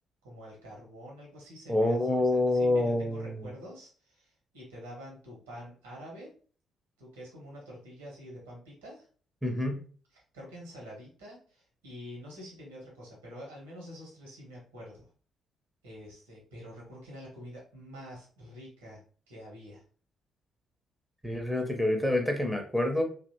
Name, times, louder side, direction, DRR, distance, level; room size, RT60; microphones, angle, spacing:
voice 1, 0.2-6.3 7.0-9.1 10.1-15.0 15.8-19.0 19.3-19.8, equal, 80° right, -3 dB, 1.1 m, -47 dB
voice 2, 1.7-3.4 9.4-9.8 21.2-23.0, left 1 dB, ahead, 3 dB, 0.8 m, -27 dB
2.8 x 2.6 x 2.7 m, 0.42 s
figure-of-eight pair, 40°, 0 cm